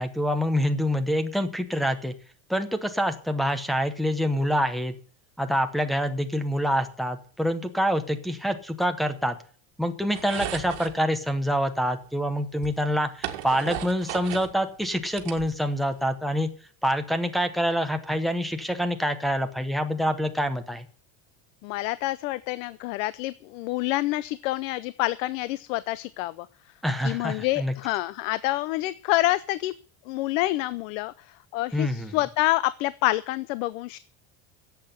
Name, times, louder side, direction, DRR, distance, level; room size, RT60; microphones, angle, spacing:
voice 1, 0.0-2.1 2.5-4.9 5.4-9.4 9.8-16.5 16.8-20.9 26.8-27.7 31.7-32.1, equal, ahead, 10 dB, 0.8 m, -26 dB
sound 1, 10.1-11.0 12.1-12.2 12.6-14.5 14.9-15.9, right 12 dB, 60° right, 2.0 m, -35 dB
voice 2, 21.6-26.5 27.0-29.7 30.1-34.0, left 17 dB, 85° left, 17 dB, 0.7 m, -27 dB
10.5 x 8.1 x 9.6 m, 0.43 s
cardioid pair, 180°, 38 cm